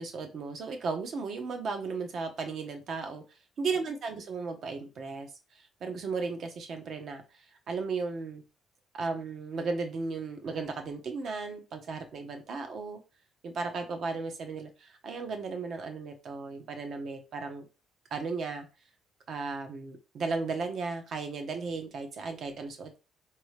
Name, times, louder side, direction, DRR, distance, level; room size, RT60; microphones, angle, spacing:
voice 1, 0.0-8.4 8.9-13.0 13.4-17.7 18.1-18.7 19.3-23.0, right 4 dB, 50° right, 6 dB, 0.9 m, -35 dB
4.7 x 2.9 x 3.2 m, 0.31 s
cardioid pair, 135°, 0 cm